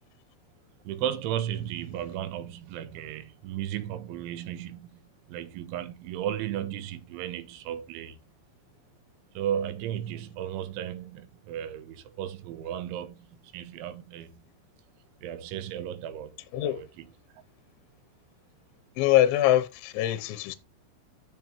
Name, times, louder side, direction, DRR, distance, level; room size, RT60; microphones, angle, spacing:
voice 1, 0.8-5.0 5.3-8.2 9.3-14.4 15.2-16.4 16.6-17.1, right 10 dB, 75° right, 3.0 m, -35 dB
voice 2, 19.0-20.6, left 13 dB, 80° left, 2.8 m, -23 dB
14.5 x 5.5 x 3.1 m
omnidirectional pair, 6.0 m